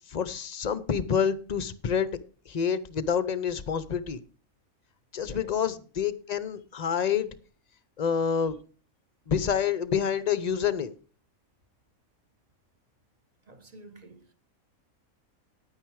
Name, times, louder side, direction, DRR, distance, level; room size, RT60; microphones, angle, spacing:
voice 1, 0.1-2.2 2.5-4.2 5.1-7.3 8.0-8.6 9.3-10.9, left 7 dB, 40° left, 0.6 m, -28 dB
voice 2, 5.2-5.6 13.5-14.3, right 2 dB, 30° right, 1.1 m, -49 dB
9.9 x 9.4 x 4.7 m
omnidirectional pair, 1.5 m